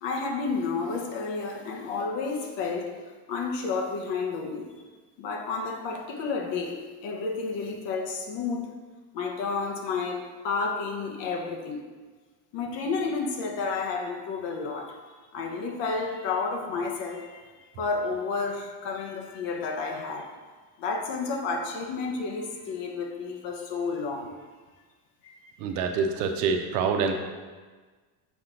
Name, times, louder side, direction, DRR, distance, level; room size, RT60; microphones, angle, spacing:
voice 1, 0.0-3.0 3.3-4.7 5.2-8.7 9.1-11.8 12.5-15.0 15.3-17.5 17.8-20.4 20.8-24.3 25.2-25.4, left 4 dB, 65° left, 2 dB, 1.3 m, -31 dB
voice 2, 25.6-27.1, right 5 dB, 75° right, 5 dB, 1.0 m, -26 dB
7.0 x 4.4 x 3.9 m, 1.4 s
hypercardioid pair, 75°, 47 cm